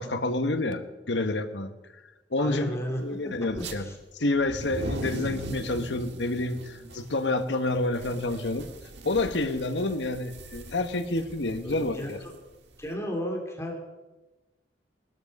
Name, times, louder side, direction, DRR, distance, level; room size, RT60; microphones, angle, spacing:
voice 1, 0.0-1.7 2.3-3.9 4.1-8.7 9.0-12.2, left 2 dB, 90° left, 8 dB, 1.2 m, -28 dB
voice 2, 2.4-3.0 3.6-3.9 11.6-12.3 12.8-13.8, equal, 15° left, 0 dB, 2.8 m, -34 dB
sound 1, 3.5-3.8 4.4-12.9, right 1 dB, 75° right, 1.7 m, -39 dB
20.0 x 12.5 x 5.4 m, 1.2 s
head